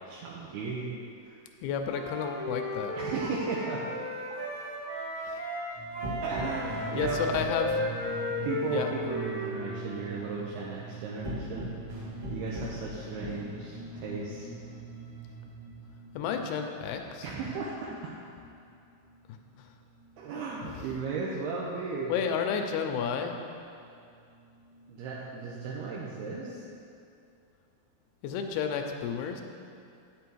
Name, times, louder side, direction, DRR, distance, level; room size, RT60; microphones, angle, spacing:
voice 1, 0.1-0.9 1.2-1.4 3.0-3.8 6.2-7.2 8.4-11.8 12.3-14.5 17.2-18.1 20.2-22.1 24.9-26.7, right 4 dB, 80° right, -4 dB, 2.7 m, -36 dB
voice 2, 1.6-2.9 7.0-7.8 8.7-8.9 16.2-17.2 22.1-23.4 28.2-29.4, left 7 dB, 80° left, 5 dB, 2.4 m, -31 dB
Wind instrument woodwind instrument, 1.9-5.7 5.9-10.0, equal, 60° left, 0.5 m, -34 dB
sound 1, 5.7-18.7 19.0-20.9 21.3-23.0 23.4-25.2, right 1 dB, 50° right, 1.6 m, -42 dB
9.1 x 6.9 x 4.6 m, 2.5 s
omnidirectional pair, 4.7 m